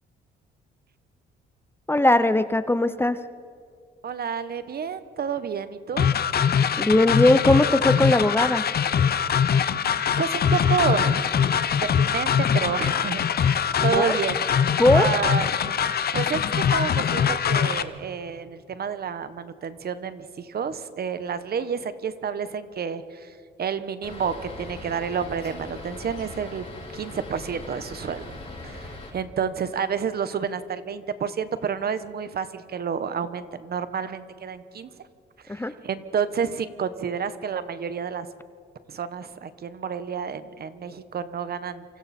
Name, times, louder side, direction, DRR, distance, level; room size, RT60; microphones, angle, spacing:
voice 1, 1.9-3.2 6.8-8.7 14.0-14.2 14.8-15.1 35.5-35.7, left 1 dB, 10° left, 12 dB, 0.7 m, -19 dB
voice 2, 4.0-6.1 10.2-11.7 11.9-15.5 16.1-23.3 23.6-26.7 26.9-28.4 28.6-34.9 35.4-38.3 38.9-41.8, right 7 dB, 50° right, 12 dB, 1.2 m, -30 dB
sound 1, 6.0-17.8, left 8 dB, 50° left, 0.9 m, -22 dB
sound 2, 24.0-29.1, left 2 dB, 30° left, 6.5 m, -40 dB
27.5 x 25.5 x 4.4 m, 2.3 s
cardioid pair, 90°, 20 cm